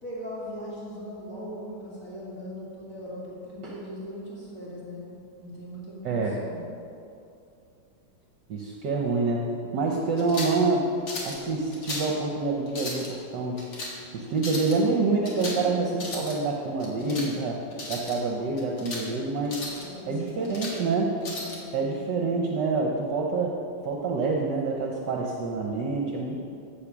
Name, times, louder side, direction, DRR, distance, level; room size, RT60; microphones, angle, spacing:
voice 1, 0.0-5.1 5.4-6.6 16.9-17.4 19.8-21.0 21.4-22.0, equal, 40° left, -7 dB, 2.5 m, -39 dB
voice 2, 6.0-6.4 8.5-10.9 11.2-13.7 14.1-17.6 17.9-19.7 20.1-21.1 21.7-23.6 23.8-26.4, right 3 dB, 65° right, 0 dB, 1.4 m, -27 dB
sound 1, 10.2-10.6 11.1-11.4 11.7-12.1 12.7-13.1 13.6-13.9 14.4-14.8 15.3-15.6 15.9-16.4 16.8-17.3 17.7-18.2 18.6-19.1 19.5-19.8 20.3-20.8 21.2-21.6, left 2 dB, 60° left, 2.5 m, -35 dB
15.5 x 5.1 x 6.0 m, 2.6 s
omnidirectional pair, 2.3 m